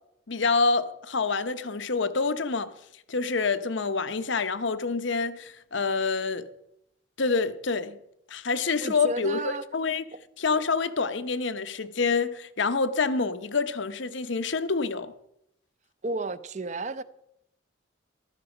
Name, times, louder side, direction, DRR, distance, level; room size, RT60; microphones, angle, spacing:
voice 1, 0.3-2.7 3.1-6.5 7.2-8.0 8.3-10.0 10.4-15.1, left 4 dB, 65° left, 0.9 m, -27 dB
voice 2, 8.8-9.6 10.1-10.2 16.0-17.0, right 2 dB, 35° right, 0.6 m, -32 dB
14.5 x 12.5 x 4.9 m
head